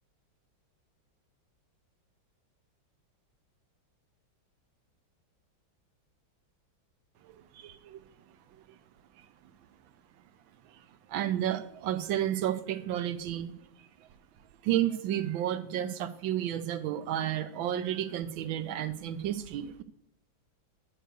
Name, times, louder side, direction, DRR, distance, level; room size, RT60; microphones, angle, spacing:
voice 1, 7.2-8.0 11.1-13.5 14.6-19.8, right 11 dB, 85° right, 12 dB, 1.5 m, -31 dB
9.0 x 6.5 x 6.8 m, 0.76 s
omnidirectional pair, 2.1 m